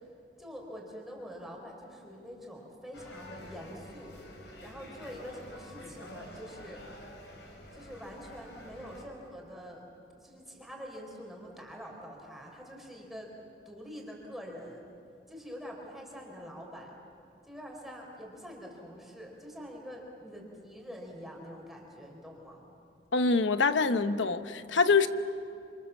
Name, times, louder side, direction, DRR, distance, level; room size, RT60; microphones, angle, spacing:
voice 1, 0.4-4.2 4.6-6.9 7.7-9.8 10.2-13.3 13.6-14.9 15.3-17.0 17.4-22.6, equal, ahead, -1 dB, 4.5 m, -45 dB
sound 1, 2.9-9.0, left 1 dB, 70° left, 5.6 m, -48 dB
voice 2, 23.1-25.1, left 4 dB, 90° left, 10 dB, 1.0 m, -25 dB
27.5 x 27.5 x 7.3 m, 2.5 s
head